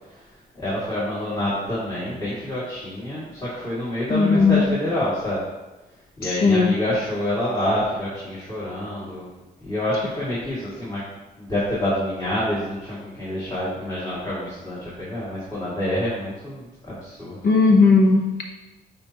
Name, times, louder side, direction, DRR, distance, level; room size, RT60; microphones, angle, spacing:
voice 1, 0.6-5.4 6.2-9.3 9.6-11.0 11.4-17.4, left 1 dB, 20° left, -9 dB, 2.1 m, -27 dB
voice 2, 4.1-4.7 6.2-6.8 17.4-18.4, left 4 dB, 65° left, 2 dB, 0.8 m, -17 dB
8.7 x 4.2 x 2.9 m, 1.1 s
cardioid pair, 110°, 17 cm